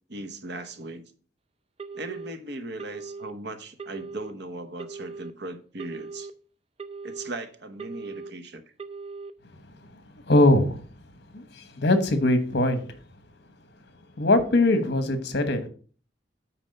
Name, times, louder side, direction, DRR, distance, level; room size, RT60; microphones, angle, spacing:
voice 1, 0.1-1.0 1.9-6.3 7.0-8.6, right 2 dB, 60° right, 1.0 m, -38 dB
Telephone, 1.8-2.3 2.8-3.3 3.8-4.3 4.8-5.3 5.8-6.3 6.8-7.3 7.8-8.3 8.8-9.3, right 4 dB, 30° right, 0.5 m, -39 dB
voice 2, 10.3-10.8 11.3-12.8 14.2-15.7, left 2 dB, 60° left, 1.3 m, -21 dB
8.9 x 4.5 x 5.3 m
head